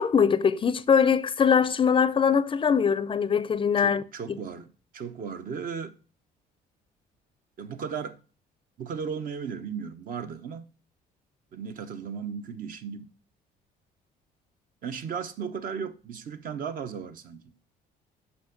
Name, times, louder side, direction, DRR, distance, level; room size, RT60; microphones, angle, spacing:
voice 1, 0.0-4.4, left 6 dB, 30° left, 0.5 m, -22 dB
voice 2, 3.8-4.7 4.9-6.0 7.6-8.2 8.8-10.7 11.5-13.1 14.8-17.4, right 6 dB, 55° right, 0.9 m, -35 dB
7.3 x 5.4 x 5.1 m
cardioid pair, 110°, 17 cm